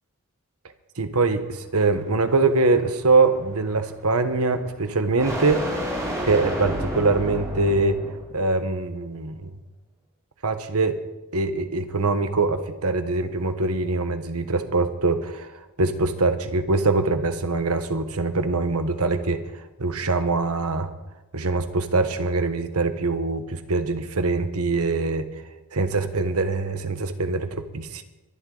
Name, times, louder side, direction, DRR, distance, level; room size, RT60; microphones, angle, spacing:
voice 1, 1.0-5.6 6.3-8.0 8.3-9.5 10.4-11.0 11.3-15.5 15.8-19.4 19.8-20.9 21.3-25.3 25.7-28.0, right 3 dB, 80° right, 8 dB, 1.3 m, -23 dB
sound 1, 1.3-8.3, equal, 15° right, 4.5 m, -32 dB
23.0 x 11.5 x 4.0 m, 1.0 s
head